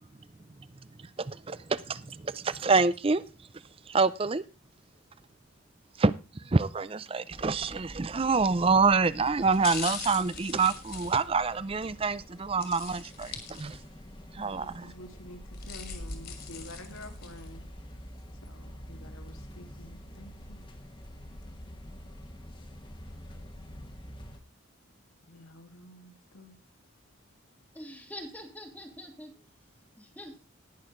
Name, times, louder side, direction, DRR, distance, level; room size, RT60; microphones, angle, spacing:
voice 1, 1.2-3.2 3.9-4.4 6.0-13.8 14.3-14.9, right 4 dB, 25° right, 0.5 m, -27 dB
sound 1, 7.3-24.4, equal, 25° left, 1.3 m, -47 dB
sound 2, 8.4-8.7 9.4-11.9 12.6-14.1 14.4-14.5 15.3-17.5 18.0-18.1, left 7 dB, 45° left, 2.4 m, -41 dB
voice 2, 14.4-17.6 18.4-20.6 25.2-26.6, left 1 dB, 80° left, 2.2 m, -49 dB
voice 3, 27.7-29.4 30.0-30.4, left 1 dB, 10° left, 1.5 m, -44 dB
19.0 x 6.5 x 3.8 m
head